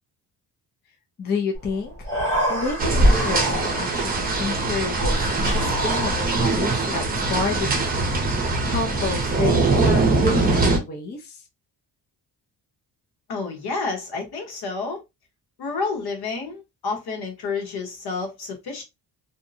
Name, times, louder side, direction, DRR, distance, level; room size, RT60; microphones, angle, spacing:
voice 1, 1.2-8.0 8.7-11.4, left 3 dB, 25° left, 0.5 m, -30 dB
Human voice, 1.5-1.7 1.9-4.0 4.9-6.6, equal, 5° left, 1.0 m, -24 dB
sound 1, 2.8-10.8, right 3 dB, 20° right, 0.6 m, -22 dB
voice 2, 13.3-15.0 15.6-18.8, left 4 dB, 65° left, 1.1 m, -30 dB
2.7 x 2.1 x 2.6 m
cardioid pair, 150°, 41 cm